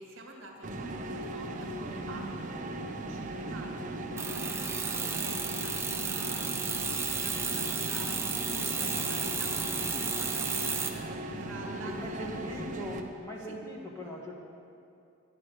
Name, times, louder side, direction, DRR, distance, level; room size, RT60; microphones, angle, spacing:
voice 1, 0.0-6.6 7.1-12.5 13.5-13.6, right 2 dB, 70° right, 1 dB, 2.0 m, -48 dB
sound 1, 0.6-13.0, right 1 dB, 40° right, 1.0 m, -38 dB
sound 2, 4.2-10.9, right 5 dB, 15° right, 0.8 m, -33 dB
voice 2, 11.8-14.3, equal, 15° left, -2 dB, 1.8 m, -40 dB
12.5 x 9.9 x 6.6 m, 2.6 s
head